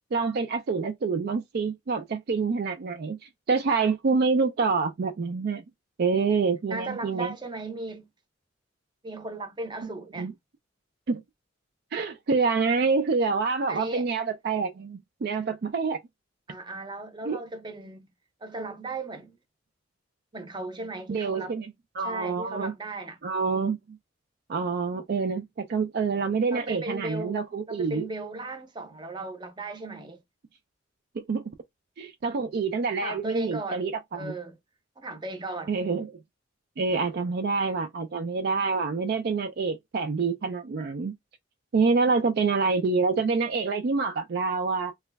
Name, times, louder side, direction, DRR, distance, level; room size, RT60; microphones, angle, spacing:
voice 1, 0.1-5.6 6.0-7.3 9.8-9.9 10.2-10.3 11.1-11.2 11.9-16.0 17.3-17.4 21.1-22.7 23.2-24.0 24.5-28.0 31.2-31.4 32.0-34.3 35.7-36.1 36.8-41.1 41.7-44.9, right 4 dB, 55° right, 0.4 m, -27 dB
voice 2, 6.7-8.1 9.0-10.3 13.7-14.1 16.5-18.1 18.4-19.4 20.3-21.5 22.0-23.2 26.5-30.2 33.0-33.8 34.1-34.5 35.0-35.7, right 2 dB, 25° right, 0.7 m, -36 dB
3.0 x 2.3 x 3.3 m
head